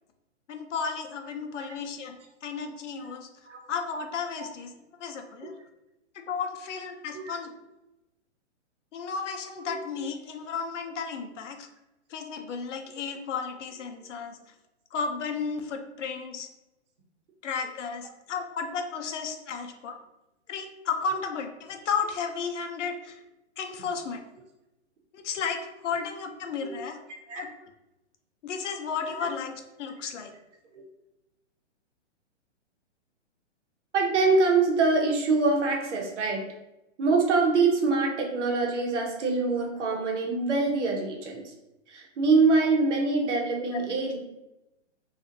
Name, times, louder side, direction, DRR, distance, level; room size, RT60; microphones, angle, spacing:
voice 1, 0.5-2.2 2.4-3.3 3.7-4.7 5.0-5.6 6.1-7.5 8.9-11.7 12.1-14.4 14.9-16.5 17.4-19.9 20.5-23.2 23.6-24.2 25.1-27.0 27.4-27.7 28.4-30.3 43.7-44.0, left 5 dB, 75° left, 5 dB, 0.6 m, -33 dB
voice 2, 33.9-36.4 37.0-41.4 41.9-44.2, right 3 dB, 70° right, 0 dB, 0.8 m, -24 dB
2.5 x 2.4 x 2.5 m, 0.94 s
hypercardioid pair, 170°, 36 cm